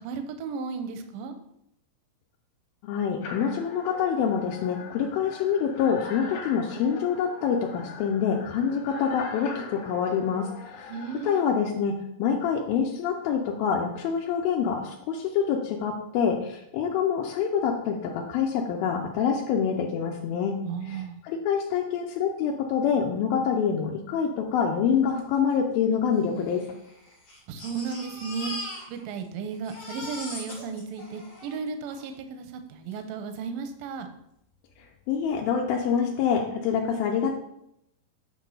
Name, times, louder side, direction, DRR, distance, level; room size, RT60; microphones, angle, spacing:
voice 1, 0.0-1.3 10.9-11.5 20.7-21.2 27.5-28.5 28.9-34.1, right 5 dB, 75° right, 7 dB, 2.1 m, -34 dB
voice 2, 2.8-10.9 11.2-20.6 20.9-26.6 34.8-37.3, left 7 dB, 75° left, 1 dB, 2.3 m, -26 dB
sound 1, 3.2-11.4, left 4 dB, 60° left, 2.5 m, -42 dB
Crying sobbing, 25.2-25.3 25.5-25.6 26.4-29.3 29.5-32.1 32.9-33.0 33.4-33.5, left 1 dB, 35° left, 2.0 m, -40 dB
8.0 x 4.4 x 5.5 m, 0.79 s
omnidirectional pair, 4.7 m